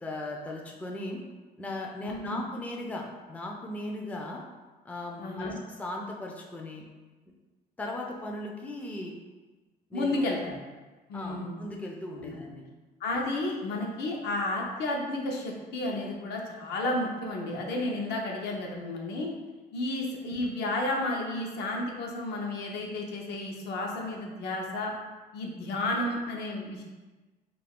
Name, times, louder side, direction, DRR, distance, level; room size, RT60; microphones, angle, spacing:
voice 1, 0.0-1.2 1.6-4.4 4.8-6.8 7.8-9.1 9.9-10.3 11.1-12.6, left 1 dB, 10° left, 0 dB, 0.3 m, -37 dB
voice 2, 2.1-2.4 5.2-5.6 9.9-10.6 11.1-11.6 12.1-12.4 13.0-19.3 19.7-24.9 25.3-26.8, left 2 dB, 75° left, 0 dB, 0.6 m, -32 dB
2.4 x 2.3 x 3.5 m, 1.3 s
cardioid pair, 110°, 17 cm